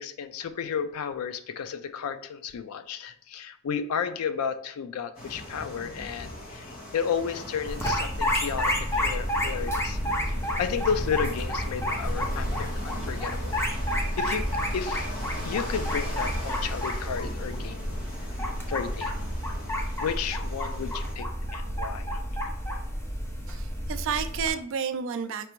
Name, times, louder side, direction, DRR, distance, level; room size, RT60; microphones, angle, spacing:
voice 1, 0.0-10.0 10.3-13.6 14.2-14.4 14.7-15.1 15.4-17.9 18.7-19.1 20.0-22.2, left 7 dB, 90° left, 11 dB, 0.4 m, -32 dB
sound 1, 5.1-21.1, left 1 dB, 40° left, 1.2 m, -39 dB
sound 2, 7.7-24.5, equal, 10° left, 0.7 m, -30 dB
voice 2, 23.5-25.5, right 7 dB, 60° right, 10 dB, 0.4 m, -31 dB
4.9 x 3.3 x 3.0 m, 0.68 s
head